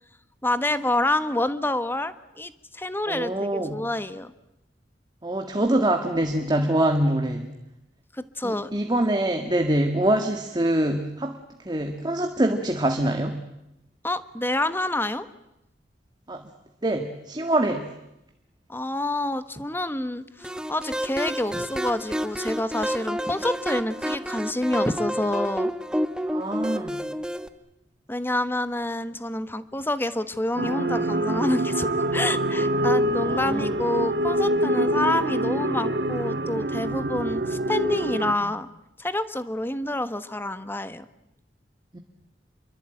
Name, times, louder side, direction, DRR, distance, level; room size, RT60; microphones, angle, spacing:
voice 1, 0.4-4.3 8.1-8.7 14.0-15.3 18.7-25.7 28.1-38.7 39.0-41.0, left 1 dB, 15° left, 12 dB, 1.2 m, -28 dB
voice 2, 3.1-3.8 5.2-7.5 8.4-11.4 11.7-13.4 16.3-16.4 16.8-17.9 26.3-27.0 33.2-33.7 41.9-42.0, right 1 dB, 25° right, 5 dB, 1.8 m, -24 dB
sound 1, 20.4-27.5, equal, 5° right, 1.1 m, -29 dB
sound 2, 30.6-38.3, right 1 dB, 65° right, 2.0 m, -25 dB
27.5 x 23.5 x 9.1 m, 0.89 s
head